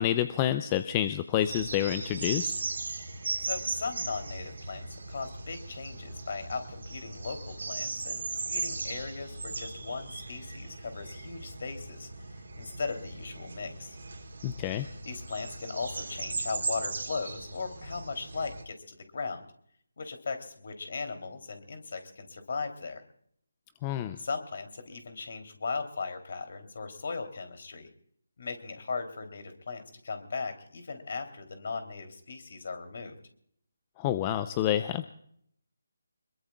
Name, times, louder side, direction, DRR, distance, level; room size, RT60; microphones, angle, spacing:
voice 1, 0.0-2.6 14.4-14.9 23.8-24.2 34.0-35.1, left 12 dB, 20° left, 11 dB, 0.6 m, -28 dB
sound 1, 1.4-18.6, right 3 dB, 60° right, 2.9 m, -38 dB
voice 2, 3.1-12.1 12.6-14.0 15.0-19.4 20.0-23.0 24.2-27.9 28.4-33.2, left 4 dB, 55° left, 7 dB, 3.2 m, -38 dB
25.5 x 22.0 x 2.4 m, 0.66 s
figure-of-eight pair, 155°, 0 cm